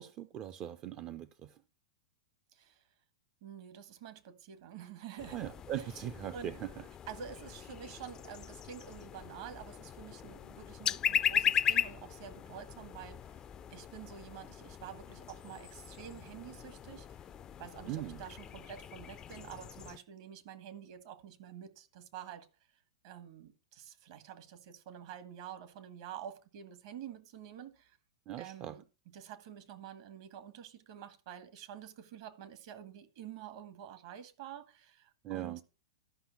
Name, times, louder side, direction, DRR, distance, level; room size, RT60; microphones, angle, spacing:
voice 1, 0.0-1.6 5.3-6.9 17.8-18.2 28.3-28.8 35.2-35.6, right 11 dB, 35° right, 0.6 m, -40 dB
voice 2, 2.5-2.8 3.4-5.5 6.3-6.6 7.1-13.4 13.7-17.1 17.6-22.5 23.0-28.0 28.4-28.8 29.1-35.6, right 9 dB, 55° right, 1.7 m, -48 dB
sound 1, 5.2-20.0, left 9 dB, 25° left, 0.4 m, -38 dB
12.0 x 5.6 x 5.7 m
hypercardioid pair, 110°, 3 cm